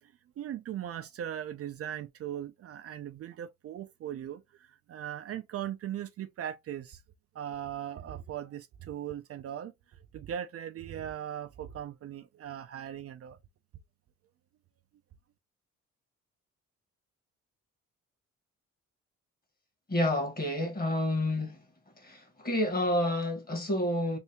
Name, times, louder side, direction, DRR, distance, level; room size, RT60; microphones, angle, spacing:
voice 1, 0.0-7.0 7.3-13.4, right 10 dB, 50° right, 0.4 m, -39 dB
voice 2, 19.9-21.6 22.0-24.2, left 1 dB, 30° left, 1.5 m, -29 dB
3.3 x 2.6 x 2.9 m
cardioid pair, 90°, 30 cm